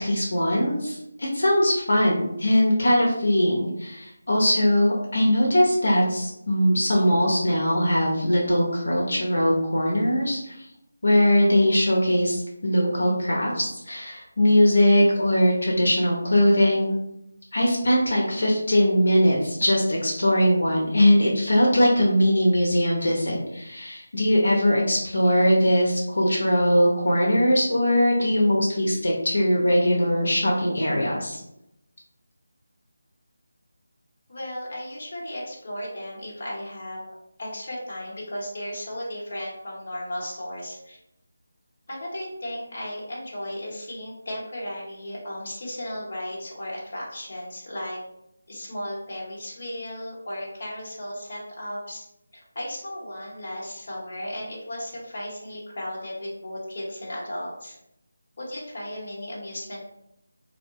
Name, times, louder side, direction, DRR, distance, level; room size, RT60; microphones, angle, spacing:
voice 1, 0.0-10.7 11.0-16.9 17.5-31.4, equal, 70° left, -3 dB, 0.6 m, -21 dB
voice 2, 34.3-37.0 37.4-41.0 41.9-48.0 48.5-52.1 52.3-57.8 58.4-59.8, left 1 dB, 40° left, -5 dB, 0.9 m, -35 dB
2.6 x 2.1 x 2.7 m, 0.82 s
figure-of-eight pair, 175°, 0 cm